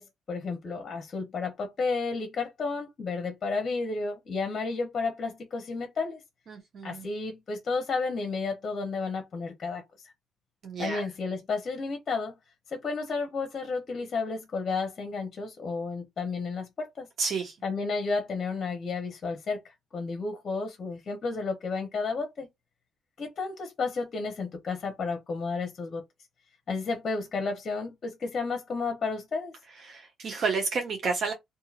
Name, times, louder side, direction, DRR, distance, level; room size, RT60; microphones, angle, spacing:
voice 1, 0.0-6.2 6.8-10.1 10.8-12.4 12.7-17.1 17.6-22.5 23.2-26.0 26.7-29.5, left 4 dB, 45° left, 0.8 m, -32 dB
voice 2, 6.5-7.0 10.6-11.0 17.2-17.5 29.9-31.3, right 4 dB, 60° right, 0.8 m, -30 dB
2.8 x 2.5 x 2.4 m
cardioid pair, 90°, 0 cm